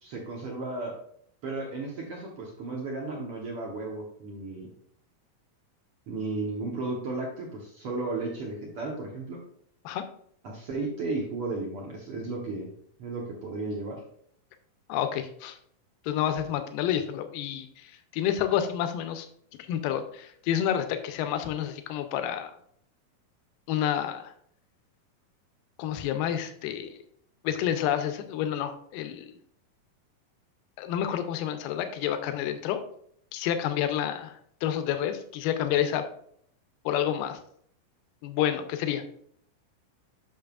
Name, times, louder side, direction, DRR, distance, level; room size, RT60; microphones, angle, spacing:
voice 1, 0.0-1.0 1.4-4.7 6.1-9.4 10.4-12.7 13.0-14.0, right 3 dB, 65° right, -2 dB, 1.4 m, -34 dB
voice 2, 14.9-15.6 16.1-19.3 19.7-22.5 23.7-24.3 25.8-26.9 27.4-29.3 30.8-32.8 33.3-36.0 36.9-37.4 38.2-39.0, left 10 dB, 80° left, 8 dB, 2.3 m, -29 dB
8.6 x 6.2 x 2.4 m, 0.65 s
omnidirectional pair, 4.1 m